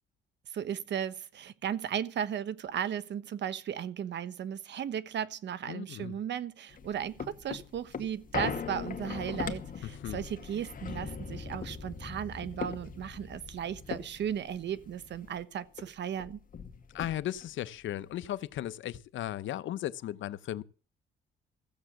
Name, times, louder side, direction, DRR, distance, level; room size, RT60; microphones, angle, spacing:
voice 1, 0.5-16.4, right 9 dB, 65° right, 1.1 m, -36 dB
voice 2, 5.7-6.2 10.0-10.2 16.9-20.6, left 12 dB, 75° left, 0.8 m, -36 dB
sound 1, 6.7-15.4 15.8-15.9 16.1-17.5 18.0-18.1, left 6 dB, 45° left, 1.9 m, -40 dB
15.5 x 7.2 x 7.9 m
cardioid pair, 90°, 20 cm